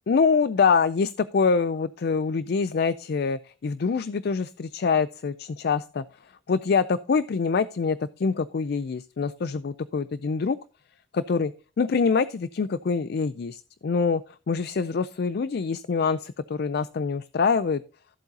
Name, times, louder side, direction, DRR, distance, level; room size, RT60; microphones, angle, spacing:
voice 1, 0.1-6.0 6.5-10.6 11.1-11.5 11.8-14.2 14.5-17.8, left 5 dB, 50° left, 16 dB, 0.4 m, -25 dB
14.0 x 7.8 x 2.8 m, 0.37 s
head